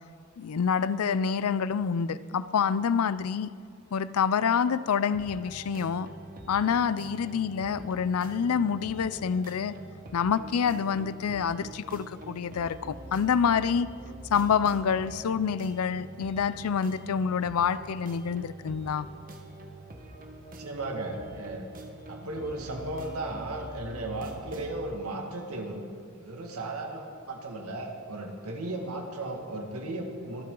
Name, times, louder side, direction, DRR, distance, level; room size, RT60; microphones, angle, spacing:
voice 1, 0.4-3.5 3.9-6.1 6.5-9.7 10.1-13.9 14.3-19.1, left 6 dB, 75° left, 17 dB, 0.4 m, -27 dB
sound 1, 5.1-24.8, right 2 dB, 40° right, 1.2 m, -45 dB
voice 2, 20.6-21.7 22.1-25.8 26.2-30.4, right 2 dB, 80° right, 2 dB, 1.9 m, -35 dB
24.0 x 8.6 x 3.8 m, 2.1 s
head